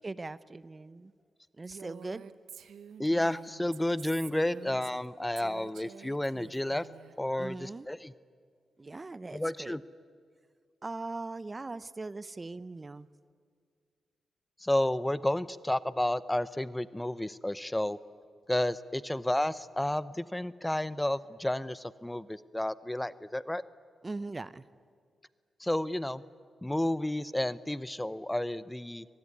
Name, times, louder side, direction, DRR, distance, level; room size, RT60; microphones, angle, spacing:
voice 1, 0.0-1.1 1.5-2.2 4.5-4.6 7.4-7.9 8.8-9.8 10.8-13.1 24.0-24.7, right 3 dB, 30° right, 17 dB, 0.7 m, -40 dB
Female speech woman speaking, 1.6-5.1 5.4-7.1, right 8 dB, 80° right, 1.0 m, -49 dB
voice 2, 3.0-6.9 7.2-8.1 9.3-9.8 14.6-18.0 18.5-23.6 25.6-26.2 26.6-29.1, left 1 dB, 10° left, 17 dB, 0.7 m, -31 dB
25.0 x 20.0 x 9.7 m, 2.1 s
cardioid pair, 65°, 0 cm